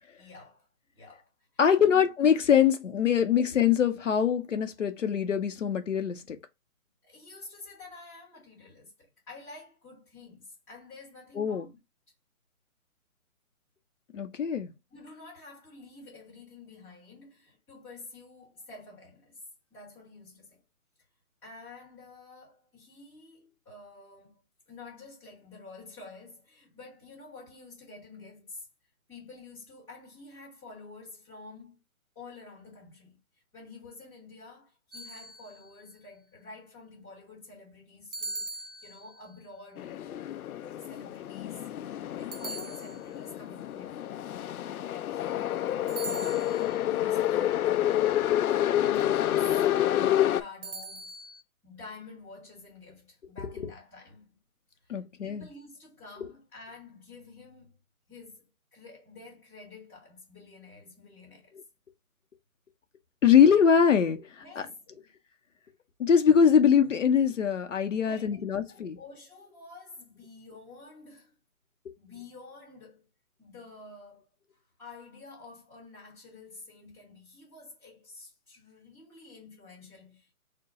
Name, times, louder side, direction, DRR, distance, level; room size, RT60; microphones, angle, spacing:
voice 1, 0.2-0.7 0.9-1.3 1.8-2.0 7.0-11.8 14.9-19.4 19.7-20.6 21.4-24.4 24.7-28.7 29.1-31.8 32.2-33.2 33.5-40.0 40.8-44.0 45.1-48.2 48.7-49.6 50.2-51.1 51.6-54.3 54.8-57.8 58.1-61.6 64.4-65.1 68.0-68.3 68.6-71.3 72.0-73.1 73.4-74.3 74.8-80.3, left 3 dB, 5° left, 1.9 m, -49 dB
voice 2, 1.6-6.4 11.4-11.7 14.1-14.7 54.9-55.5 63.2-64.4 66.0-69.0, left 7 dB, 60° left, 0.8 m, -23 dB
sound 1, 34.9-35.8 38.1-39.4 42.3-43.4 45.9-46.8 50.6-51.4, right 3 dB, 55° right, 0.7 m, -41 dB
sound 2, 39.8-50.4, left 12 dB, 85° left, 0.5 m, -28 dB
4.4 x 2.2 x 3.8 m
hypercardioid pair, 175°, 43 cm